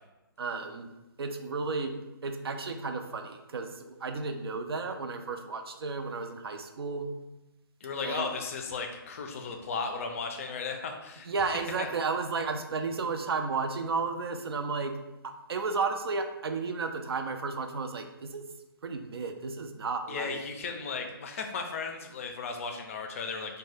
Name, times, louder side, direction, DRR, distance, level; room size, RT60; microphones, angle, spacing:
voice 1, 0.4-0.9 1.2-1.9 2.2-7.1 8.0-8.3 11.2-14.9 15.2-18.4 18.8-20.4, right 4 dB, 85° right, 6 dB, 0.4 m, -33 dB
voice 2, 7.8-11.3 11.8-11.9 20.1-23.6, left 5 dB, 35° left, 4 dB, 0.4 m, -35 dB
2.6 x 2.2 x 3.3 m, 1.0 s
hypercardioid pair, 155°, 13 cm